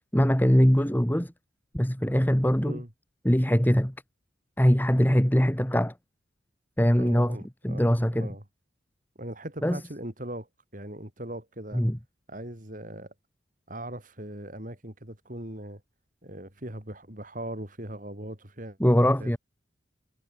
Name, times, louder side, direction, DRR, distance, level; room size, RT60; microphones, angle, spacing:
voice 1, 0.1-1.3 1.7-2.8 3.2-3.9 4.6-5.9 6.8-7.4 7.6-8.3 9.6-9.8 11.7-12.0 18.8-19.4, equal, 10° left, 1.7 m, -22 dB
voice 2, 7.0-7.9 8.2-8.4 9.2-11.8 12.3-13.1 13.7-15.8 16.2-19.4, right 1 dB, 45° right, 4.8 m, -40 dB
head